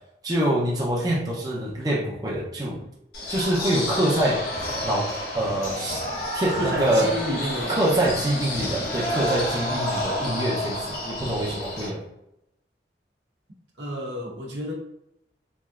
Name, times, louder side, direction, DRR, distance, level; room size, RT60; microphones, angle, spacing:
voice 1, 0.2-2.8 3.3-4.4 4.8-5.1 5.3-6.0 6.3-7.1 7.7-12.0, right 1 dB, 20° right, -4 dB, 0.5 m, -25 dB
sound 1, 3.1-11.9, left 1 dB, 60° left, 0.9 m, -30 dB
voice 2, 6.5-7.7 13.8-14.7, equal, 85° right, -2 dB, 0.8 m, -30 dB
3.3 x 2.6 x 2.3 m, 0.84 s
head